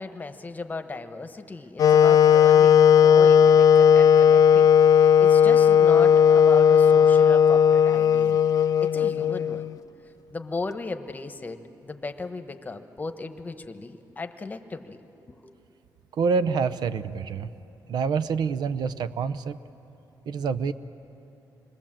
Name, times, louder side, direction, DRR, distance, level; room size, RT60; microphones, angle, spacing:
voice 1, 0.0-8.4 8.8-9.7 10.3-15.5, left 3 dB, 25° left, 8 dB, 1.1 m, -36 dB
Wind instrument woodwind instrument, 1.8-9.8, left 8 dB, 55° left, 0.4 m, -16 dB
voice 2, 16.2-17.5 17.9-19.6 20.3-20.7, right 5 dB, 70° right, 13 dB, 0.7 m, -26 dB
27.0 x 22.0 x 7.6 m, 2.9 s
cardioid pair, 120°, 7 cm